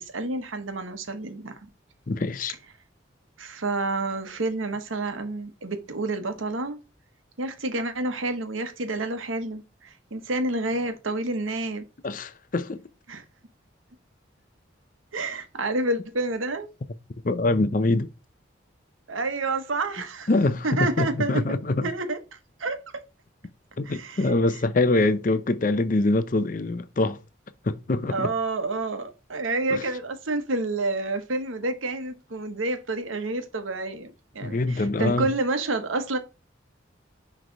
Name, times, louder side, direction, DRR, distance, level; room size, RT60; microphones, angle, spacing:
voice 1, 0.0-1.5 3.4-6.8 7.4-11.9 13.1-13.2 15.1-16.7 19.1-20.3 20.6-21.6 21.8-22.2 22.6-22.8 23.8-24.4 28.1-36.2, right 2 dB, 85° right, 1.1 m, -29 dB
voice 2, 2.1-2.5 12.0-12.8 17.2-18.1 20.3-21.9 23.8-27.2 27.6-28.3 29.7-29.8 34.4-35.3, left 2 dB, 40° left, 0.5 m, -24 dB
6.3 x 3.3 x 4.5 m
head